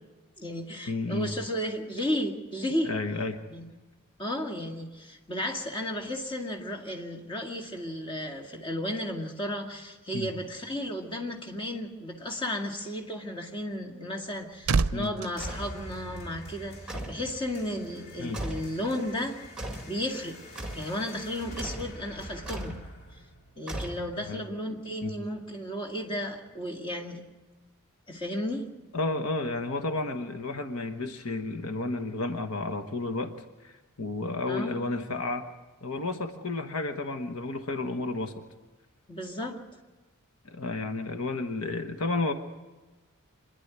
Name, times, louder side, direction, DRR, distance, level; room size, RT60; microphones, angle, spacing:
voice 1, 0.4-2.9 3.5-3.7 4.2-16.8 17.1-19.4 19.9-20.4 20.7-22.8 23.6-27.2 28.1-28.7 34.5-34.9 39.1-39.6, left 1 dB, 25° left, 1 dB, 2.1 m, -34 dB
voice 2, 0.9-1.3 2.8-3.4 10.1-10.3 14.9-15.1 18.2-18.4 24.3-24.4 25.0-25.1 28.9-33.4 33.6-35.5 35.8-38.4 40.4-42.3, left 3 dB, 75° left, 7 dB, 1.3 m, -32 dB
sound 1, 13.9-16.6 16.9-17.1, right 4 dB, 70° right, 0.5 m, -31 dB
sound 2, 15.4-24.4, equal, 45° left, 2.9 m, -45 dB
sound 3, 15.4-15.7 16.9-17.3 18.3-18.7 19.6-19.9 20.6-20.9 21.6-21.9 22.5-22.8 23.7-24.3, right 1 dB, 5° right, 2.0 m, -37 dB
26.0 x 11.0 x 9.6 m, 1.2 s
head